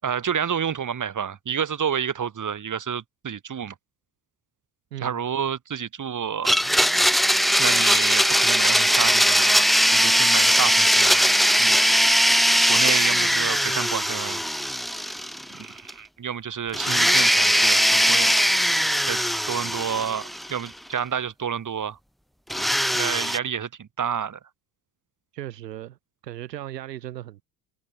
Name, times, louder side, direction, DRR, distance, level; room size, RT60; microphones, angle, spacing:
voice 1, 0.0-3.7 5.0-6.5 7.6-11.3 11.6-11.8 12.7-14.4 15.5-18.3 19.1-22.0 22.9-24.4, right 7 dB, 40° right, 6.2 m, -29 dB
Domestic sounds home sounds, 6.4-15.6 15.9-16.0 16.7-20.7 22.5-23.4, equal, ahead, 0.5 m, -20 dB
voice 2, 25.3-26.0 26.2-27.4, right 13 dB, 80° right, 2.4 m, -36 dB
figure-of-eight pair, 55°, 48 cm